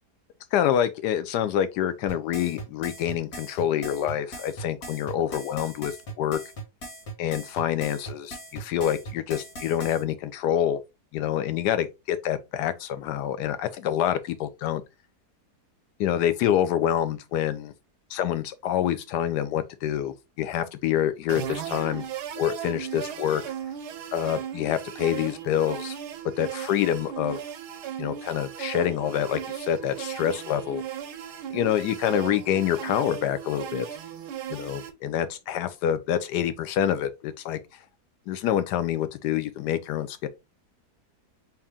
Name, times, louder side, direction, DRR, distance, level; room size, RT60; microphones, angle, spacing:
voice 1, 0.5-6.4 7.2-10.8 11.1-14.8 16.0-17.7 18.1-22.0 22.4-23.4 24.1-26.0 26.4-27.4 28.0-30.8 31.5-33.9 34.5-37.6 38.3-40.3, left 10 dB, 85° left, 1.2 m, -26 dB
sound 1, 2.1-10.0, right 1 dB, 70° left, 2.1 m, -39 dB
sound 2, 21.3-34.9, right 9 dB, 90° right, 1.2 m, -36 dB
3.5 x 2.8 x 3.5 m
omnidirectional pair, 1.7 m